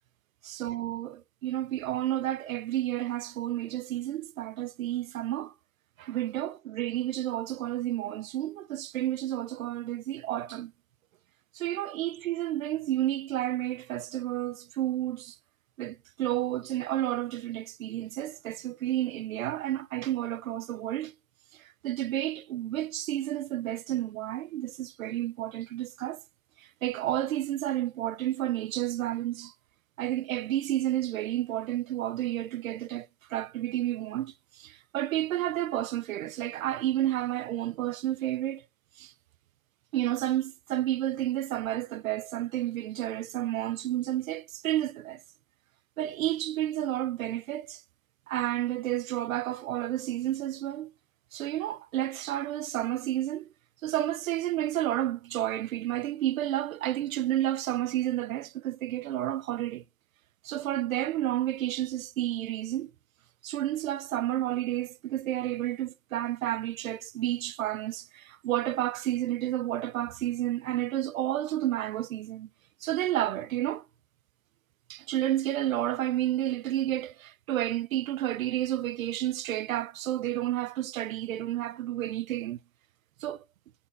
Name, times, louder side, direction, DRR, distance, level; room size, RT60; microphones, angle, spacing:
voice 1, 0.4-5.5 6.0-10.7 11.5-15.4 15.8-21.1 21.8-26.2 26.8-29.5 30.0-38.6 39.0-39.1 39.9-45.2 46.0-47.8 48.3-50.9 51.3-53.5 53.8-59.8 60.4-62.9 63.4-72.5 72.8-73.8 74.9-82.6 83.2-83.4, right 13 dB, 60° right, 0.6 m, -31 dB
13.0 x 4.4 x 7.1 m
hypercardioid pair, 170°, 47 cm